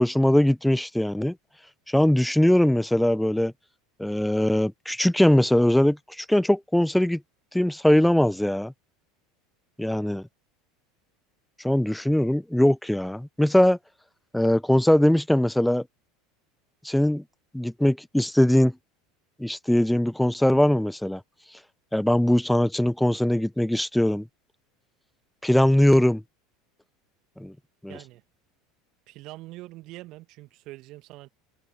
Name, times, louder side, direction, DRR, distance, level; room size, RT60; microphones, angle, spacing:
voice 1, 0.0-1.4 1.9-3.5 4.0-7.2 7.5-8.7 9.8-10.2 11.6-13.8 14.3-15.8 16.8-17.2 17.5-18.7 19.4-21.2 21.9-24.3 25.4-26.2 27.4-27.5 27.8-28.0, left 1 dB, 5° left, 0.6 m, -21 dB
voice 2, 27.9-28.2 29.1-31.3, right 19 dB, 50° right, 2.2 m, -43 dB
figure-of-eight pair, 75°, 0 cm